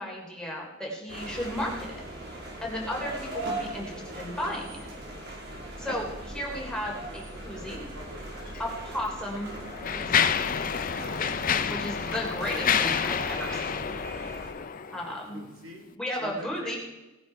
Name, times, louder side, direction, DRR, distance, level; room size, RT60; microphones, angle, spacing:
voice 1, 0.0-2.0 2.6-4.9 5.8-7.8 8.6-9.5 9.9-10.2 11.7-13.9 14.9-15.4 16.0-16.8, left 1 dB, 5° left, -2 dB, 3.4 m, -34 dB
sound 1, 1.1-14.5, right 1 dB, 55° right, 2.9 m, -39 dB
voice 2, 7.5-8.7 14.1-14.6 15.1-15.9 16.2-16.8, right 1 dB, 85° right, 2 dB, 3.5 m, -46 dB
Mechanisms, 8.5-8.6 9.3-15.1, left 7 dB, 45° left, 0.6 m, -28 dB
18.5 x 9.5 x 4.6 m, 1.0 s
head